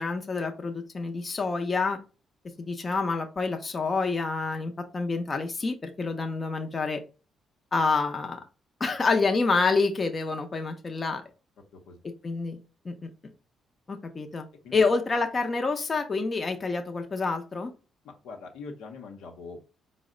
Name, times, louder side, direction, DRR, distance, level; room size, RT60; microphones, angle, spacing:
voice 1, 0.0-2.0 2.6-7.0 7.7-8.4 8.8-11.2 12.2-12.6 12.8-13.1 13.9-14.5 14.7-17.7, left 4 dB, 35° left, 5 dB, 0.6 m, -27 dB
voice 2, 18.0-19.6, left 4 dB, 90° left, 2 dB, 0.8 m, -42 dB
4.1 x 2.1 x 3.7 m, 0.33 s
cardioid pair, 90°, 0 cm